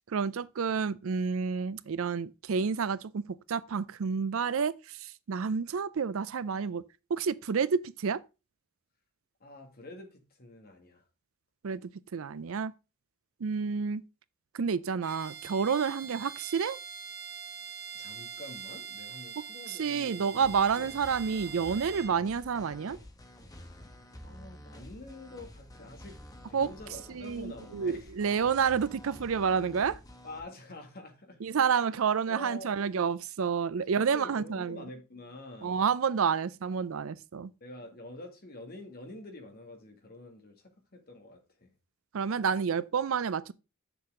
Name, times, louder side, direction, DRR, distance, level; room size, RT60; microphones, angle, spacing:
voice 1, 0.1-8.2 11.6-12.7 13.4-14.0 14.5-16.8 19.7-23.0 26.5-26.7 27.1-30.0 31.4-34.8 35.6-37.5 42.1-43.5, right 6 dB, 65° right, 0.4 m, -29 dB
voice 2, 9.4-11.0 17.9-20.9 24.2-26.2 26.5-28.1 30.2-31.8 32.3-32.8 33.9-35.8 37.6-41.7, left 2 dB, 45° left, 2.0 m, -47 dB
Bowed string instrument, 15.0-22.2, right 7 dB, 50° right, 1.2 m, -43 dB
sound 1, 20.4-30.4, left 1 dB, 15° left, 1.1 m, -50 dB
7.6 x 7.0 x 3.6 m
head